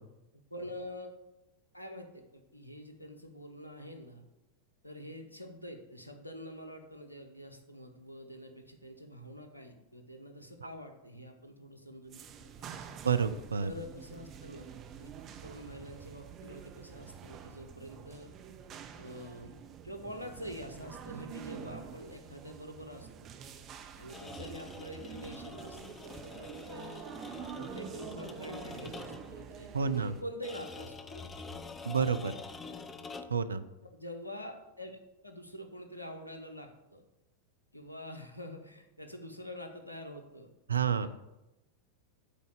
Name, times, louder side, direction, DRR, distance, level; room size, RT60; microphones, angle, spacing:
voice 1, 0.3-1.1 1.7-4.3 4.8-12.8 13.6-14.6 15.0-15.1 15.4-18.3 18.9-19.5 19.8-23.3 24.0-27.1 27.4-31.3 31.8-32.7 33.9-37.0 37.7-40.5 41.0-41.1, equal, 85° left, 5 dB, 1.0 m, -46 dB
sound 1, 12.1-30.2, right 7 dB, 30° right, 0.7 m, -47 dB
voice 2, 13.0-13.7 29.7-30.1 31.8-32.3 33.3-33.6 40.7-41.1, right 6 dB, 75° right, 12 dB, 0.5 m, -29 dB
sound 2, 24.0-29.4 30.4-33.5, left 4 dB, 15° left, 0.6 m, -46 dB
8.3 x 4.0 x 6.6 m, 0.96 s
figure-of-eight pair, 90°, 0 cm